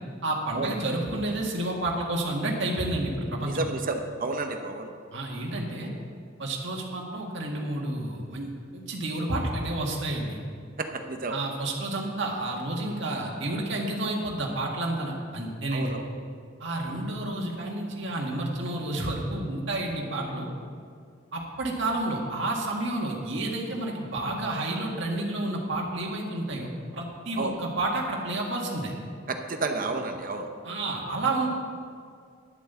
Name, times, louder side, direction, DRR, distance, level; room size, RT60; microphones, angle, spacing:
voice 1, 0.2-3.6 5.1-5.9 6.4-10.4 11.3-15.9 16.6-20.5 21.3-28.9 30.6-31.5, right 2 dB, 60° right, -1 dB, 1.8 m, -30 dB
voice 2, 3.4-4.9 10.8-11.4 15.7-16.1 27.4-27.6 29.3-30.5, right 3 dB, 40° right, 5 dB, 0.8 m, -31 dB
11.0 x 7.8 x 6.8 m, 2.2 s
head